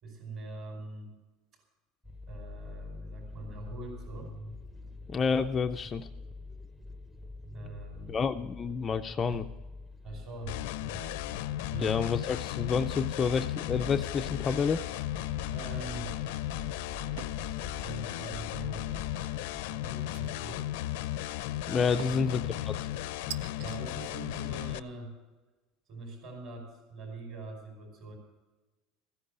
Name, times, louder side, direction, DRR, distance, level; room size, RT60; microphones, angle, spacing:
voice 1, 0.0-1.1 2.3-4.3 7.5-8.2 9.3-9.4 10.0-11.1 11.6-11.9 15.5-16.2 17.8-18.8 19.6-20.6 21.8-22.5 23.6-25.2 25.9-28.2, right 2 dB, 40° right, 3 dB, 5.2 m, -43 dB
sound 1, 2.0-19.6, left 2 dB, 5° right, 0.7 m, -46 dB
voice 2, 5.1-6.1 8.1-9.4 11.8-14.8 21.7-22.9, left 5 dB, 20° left, 7 dB, 0.4 m, -29 dB
sound 2, 10.5-24.8, left 14 dB, 80° left, 0.5 m, -35 dB
sound 3, 17.2-17.5 17.9-18.4 20.1-20.7 22.0-22.4 23.3-23.8, right 10 dB, 70° right, 0.5 m, -44 dB
14.5 x 10.0 x 6.6 m, 1.2 s
cardioid pair, 175°, 0 cm